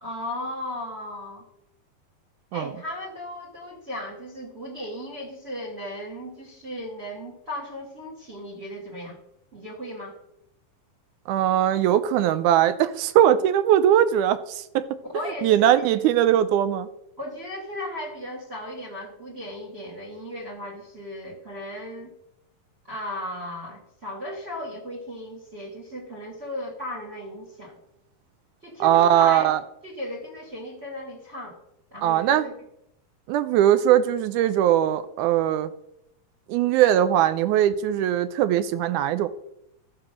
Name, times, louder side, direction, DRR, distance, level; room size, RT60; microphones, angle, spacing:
voice 1, 0.0-1.5 2.5-9.2 9.5-10.2 15.1-15.9 17.2-22.1 22.9-27.7 28.6-29.5 29.8-31.6 31.9-32.5, left 1 dB, 30° right, -2 dB, 1.2 m, -36 dB
voice 2, 11.3-15.0 15.4-16.9 28.8-29.6 32.0-32.5 33.3-35.7 36.5-39.3, right 11 dB, 80° right, 13 dB, 1.8 m, -20 dB
13.5 x 4.8 x 6.2 m, 0.81 s
omnidirectional pair, 4.0 m